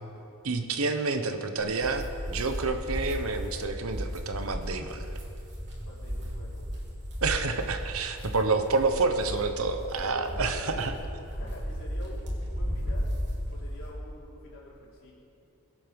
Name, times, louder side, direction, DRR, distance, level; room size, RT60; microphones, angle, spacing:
voice 1, 0.4-5.1 7.2-10.9, right 3 dB, 70° right, 7 dB, 1.0 m, -28 dB
voice 2, 1.0-1.4 5.8-6.6 10.0-13.1 13.5-15.1, left 1 dB, 60° left, -5 dB, 4.0 m, -47 dB
sound 1, 1.6-13.9, equal, 55° right, 3.3 m, -35 dB
22.5 x 8.5 x 5.3 m, 2.8 s
head